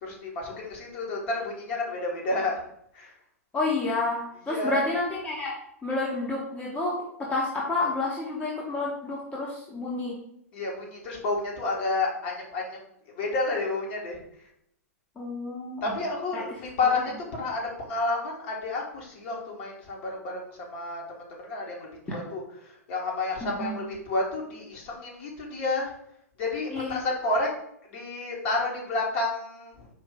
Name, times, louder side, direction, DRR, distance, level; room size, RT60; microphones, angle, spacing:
voice 1, 0.0-2.6 2.9-3.1 4.5-4.8 10.5-12.8 13.1-14.2 15.8-25.9 26.4-27.5 27.9-29.9, left 2 dB, 45° left, -2 dB, 1.3 m, -30 dB
voice 2, 3.5-5.5 5.8-10.2 15.2-15.8 16.3-16.4 23.4-23.8 26.7-26.9, left 2 dB, 15° left, -3 dB, 0.8 m, -29 dB
4.6 x 2.6 x 3.8 m, 0.74 s
figure-of-eight pair, 105°, 8 cm